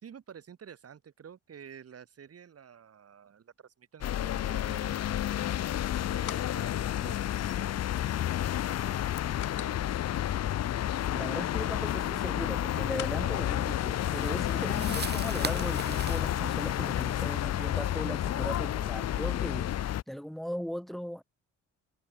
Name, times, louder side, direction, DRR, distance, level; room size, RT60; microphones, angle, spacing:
voice 1, 0.0-5.1 6.0-7.7 9.2-9.9, right 8 dB, 50° right, 4.9 m, -50 dB
sound 1, 4.0-20.0, left 12 dB, 55° left, 0.8 m, -30 dB
sound 2, 5.7-14.6, left 14 dB, 80° left, 3.5 m, -50 dB
voice 2, 11.1-21.2, equal, ahead, 2.5 m, -38 dB
sound 3, 13.6-18.5, right 6 dB, 35° right, 1.8 m, -42 dB
cardioid pair, 90°, 30 cm